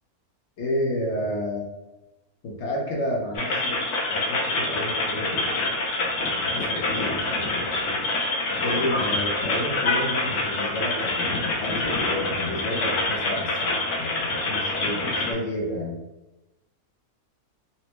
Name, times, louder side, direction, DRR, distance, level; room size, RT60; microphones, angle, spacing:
voice 1, 0.6-1.7 2.4-3.8 4.1-5.4 6.4-7.7 8.6-15.9, left 1 dB, 55° left, -2 dB, 0.9 m, -31 dB
sound 1, 3.3-15.3, left 2 dB, 90° left, 1.2 m, -26 dB
4.2 x 2.1 x 2.9 m, 1.0 s
omnidirectional pair, 1.6 m